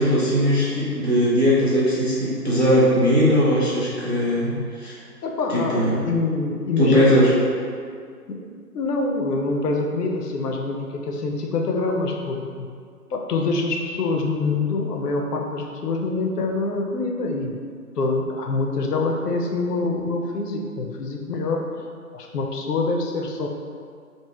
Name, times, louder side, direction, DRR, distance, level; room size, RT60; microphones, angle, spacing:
voice 1, 0.0-5.0 5.5-6.0 6.8-7.3, equal, 45° right, -8 dB, 0.4 m, -19 dB
voice 2, 5.2-7.2 8.3-8.4 8.7-12.7 13.1-17.6 18.0-21.6 22.1-23.5, left 3 dB, 80° left, 1 dB, 0.6 m, -25 dB
2.9 x 2.5 x 2.3 m, 2.1 s
figure-of-eight pair, 170°, 48 cm